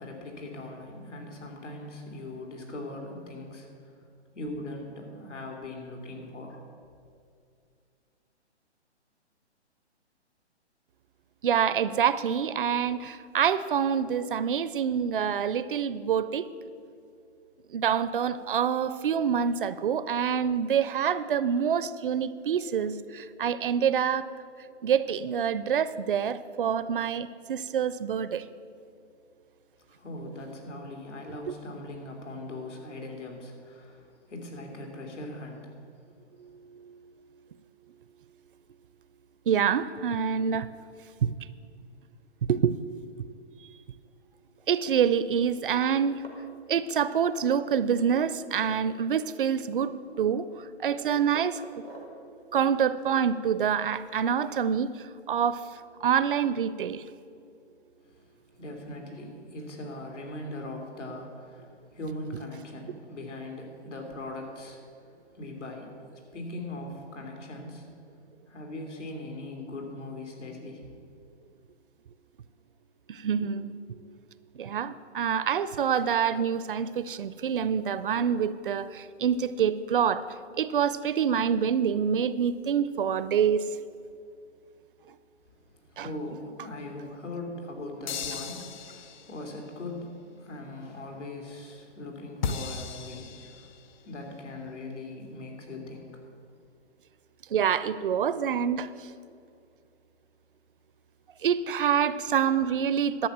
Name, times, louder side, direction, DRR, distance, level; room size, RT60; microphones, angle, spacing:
voice 1, 0.0-4.0 4.3-6.7 29.9-35.7 58.0-67.9 68.5-71.0 85.8-96.3, left 2 dB, 85° left, 2 dB, 2.9 m, -40 dB
voice 2, 11.4-16.5 17.7-24.3 24.8-28.5 31.5-31.6 36.4-37.1 39.5-40.7 41.2-41.3 42.5-42.7 44.7-46.2 46.7-51.6 52.5-55.6 56.0-57.0 73.1-74.2 74.6-80.3 80.5-83.7 86.0-86.1 97.5-99.1 101.4-103.3, right 8 dB, 50° right, 15 dB, 0.5 m, -26 dB
sound 1, 44.6-44.9 45.5-45.6 45.9-46.6 46.8-47.9 48.2-48.3 48.5-49.3 49.7-50.5 50.9-52.2 52.7-54.5, right 1 dB, 5° left, 0.4 m, -50 dB
sound 2, 88.1-89.6 92.4-94.0, left 6 dB, 40° left, 0.6 m, -36 dB
11.5 x 7.1 x 7.3 m, 2.4 s
hypercardioid pair, 150°, 35 cm